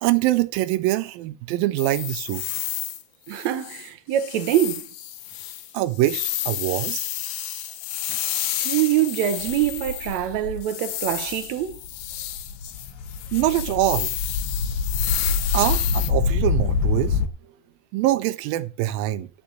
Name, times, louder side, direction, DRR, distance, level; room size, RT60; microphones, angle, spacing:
voice 1, 0.0-2.4 5.7-7.1 13.3-14.1 15.5-17.2 17.9-19.3, right 16 dB, 80° right, 2.3 m, -24 dB
sound 1, 1.8-3.0 3.3-10.3 10.6-16.1, left 12 dB, 85° left, 2.8 m, -31 dB
voice 2, 3.3-4.9 8.6-11.8, right 12 dB, 65° right, 1.9 m, -24 dB
sound 2, 9.4-10.6 11.3-11.4 11.7-17.3, left 4 dB, 65° left, 2.0 m, -26 dB
11.0 x 5.2 x 7.2 m
omnidirectional pair, 4.1 m